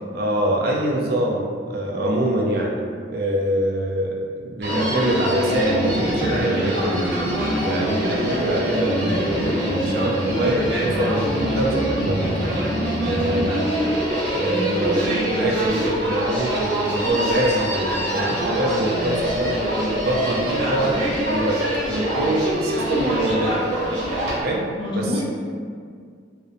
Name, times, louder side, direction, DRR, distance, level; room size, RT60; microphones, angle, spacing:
voice 1, 0.1-7.0 7.6-12.2 13.0-13.7 14.3-21.6 21.9-23.6 24.4-25.2, right 1 dB, 55° right, -1 dB, 0.4 m, -25 dB
Human voice, 4.6-24.4, equal, 75° right, 0.8 m, -24 dB
voice 2, 14.3-14.7 24.8-25.2, left 1 dB, 25° left, -8 dB, 0.6 m, -28 dB
2.5 x 2.1 x 2.5 m, 2.1 s
head